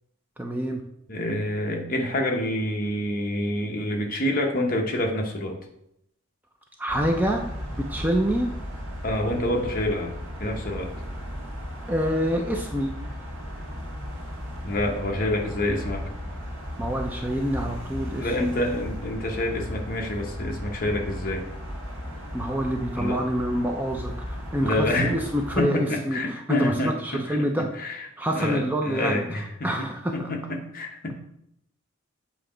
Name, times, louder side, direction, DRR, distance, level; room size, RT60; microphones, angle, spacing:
voice 1, 0.4-0.8 6.8-7.4 7.7-8.5 11.9-12.9 16.8-18.5 22.3-27.7 28.2-29.2 29.6-30.3, equal, 10° right, 2 dB, 0.4 m, -27 dB
voice 2, 1.1-5.6 9.0-10.9 14.6-16.1 18.2-21.5 22.9-23.2 24.6-25.2 25.6-29.9 30.1-31.2, left 1 dB, 40° left, 1 dB, 0.9 m, -27 dB
sound 1, 6.9-25.6, equal, 70° right, 1.8 m, -36 dB
7.8 x 2.9 x 4.9 m, 0.77 s
head